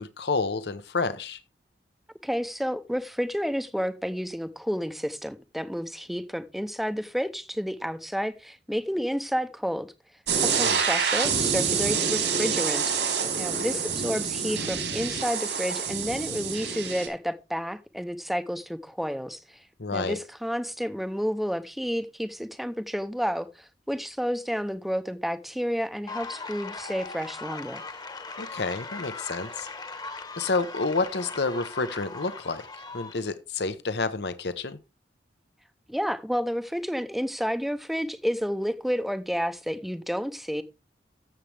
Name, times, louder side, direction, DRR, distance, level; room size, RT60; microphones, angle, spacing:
voice 1, 0.0-1.4 10.5-10.8 19.8-20.2 28.4-29.7 30.4-32.7 32.9-34.8, left 3 dB, 70° left, 1.0 m, -29 dB
voice 2, 2.2-9.9 10.5-13.0 13.4-19.6 19.9-27.8 35.9-40.6, equal, ahead, 0.8 m, -30 dB
sound 1, 10.3-17.1, right 6 dB, 80° right, 3.9 m, -27 dB
sound 2, 26.1-33.3, left 4 dB, 25° left, 1.2 m, -39 dB
13.5 x 7.4 x 3.4 m
head